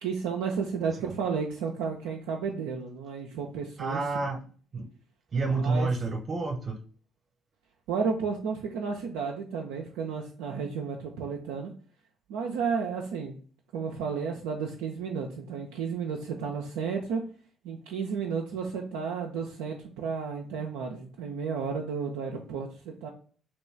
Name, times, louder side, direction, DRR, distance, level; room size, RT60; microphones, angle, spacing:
voice 1, 0.0-4.0 5.6-5.9 7.9-11.7 12.3-13.4 13.7-17.2 17.6-23.1, right 6 dB, 65° right, 0 dB, 0.4 m, -32 dB
voice 2, 3.8-4.4 4.7-4.8 5.3-6.7, right 3 dB, 35° right, 4 dB, 0.9 m, -28 dB
3.0 x 3.0 x 3.2 m, 0.42 s
figure-of-eight pair, 45°, 0 cm